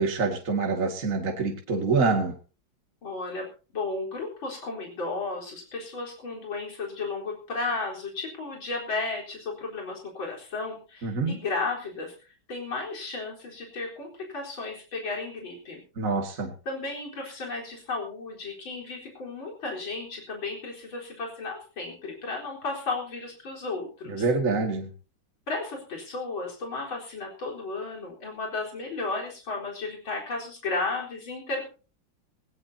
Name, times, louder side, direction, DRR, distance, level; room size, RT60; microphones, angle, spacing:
voice 1, 0.0-2.3 11.0-11.4 16.0-16.5 24.1-24.9, right 4 dB, 40° right, 3 dB, 2.4 m, -26 dB
voice 2, 3.0-3.5 3.7-12.1 12.5-15.8 16.6-24.3 25.5-31.6, left 3 dB, 75° left, -1 dB, 5.0 m, -34 dB
19.0 x 18.5 x 2.8 m, 0.35 s
omnidirectional pair, 2.2 m